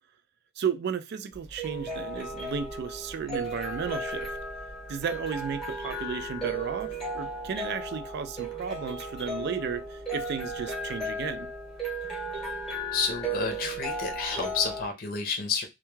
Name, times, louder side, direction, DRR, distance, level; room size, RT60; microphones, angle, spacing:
voice 1, 0.6-4.4 4.9-11.5, right 6 dB, 55° right, 0.3 m, -34 dB
sound 1, 1.3-14.9, right 1 dB, ahead, 0.9 m, -35 dB
voice 2, 12.9-15.7, left 5 dB, 50° left, 0.6 m, -30 dB
2.2 x 2.2 x 3.0 m
head